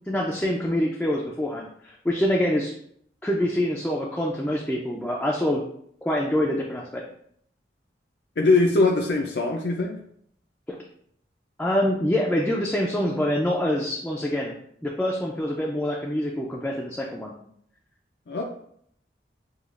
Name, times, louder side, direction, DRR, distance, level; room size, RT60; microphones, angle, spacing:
voice 1, 0.1-2.7 3.2-5.6 6.0-7.0 11.6-14.6 14.8-17.3, left 1 dB, 5° left, -3 dB, 0.4 m, -25 dB
voice 2, 8.4-10.0 18.3-18.4, left 3 dB, 70° left, 1 dB, 0.4 m, -21 dB
6.7 x 2.3 x 2.4 m, 0.67 s
head